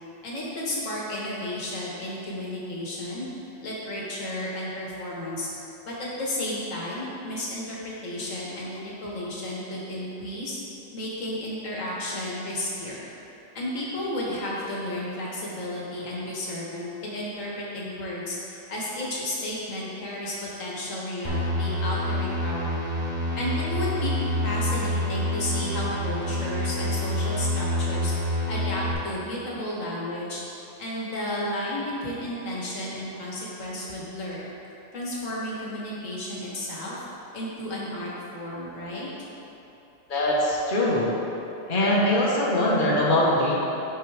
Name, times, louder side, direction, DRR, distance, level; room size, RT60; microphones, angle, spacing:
voice 1, 0.2-3.3 3.6-5.5 5.9-10.6 10.9-13.0 13.5-22.8 23.3-24.1 24.4-28.1 28.5-30.4 30.8-34.5 34.9-37.0 37.3-39.3, left 1 dB, 45° left, -5 dB, 1.7 m, -32 dB
sound 1, 21.2-28.9, left 1 dB, 5° right, 1.0 m, -27 dB
voice 2, 40.1-41.1 41.7-43.5, left 1 dB, 30° left, -5 dB, 1.2 m, -22 dB
12.0 x 4.5 x 3.4 m, 3.0 s
omnidirectional pair, 1.9 m